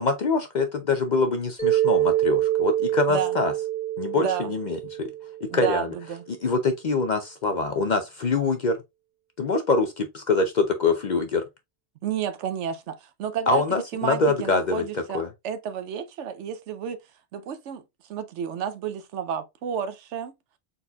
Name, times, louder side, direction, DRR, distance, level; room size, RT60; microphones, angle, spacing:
voice 1, 0.0-3.5 4.0-5.1 5.4-5.9 6.4-8.8 9.4-11.4 13.5-15.3, left 3 dB, 50° left, 0.6 m, -24 dB
Mallet percussion, 1.6-5.7, right 13 dB, 5° left, 1.1 m, -25 dB
voice 2, 5.5-6.2 12.0-13.6 13.9-17.0 17.3-17.8 18.1-20.3, right 8 dB, 80° right, 0.9 m, -31 dB
4.1 x 4.1 x 2.3 m
omnidirectional pair, 1.2 m